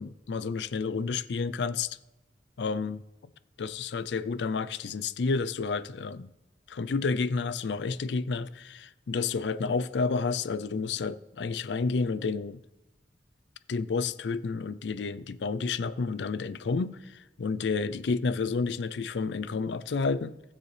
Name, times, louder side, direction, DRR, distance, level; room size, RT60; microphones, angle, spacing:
voice 1, 0.0-2.0 2.6-3.0 3.6-6.3 6.7-12.6 13.7-20.4, left 4 dB, 80° left, 0.4 m, -30 dB
18.0 x 6.8 x 3.3 m
head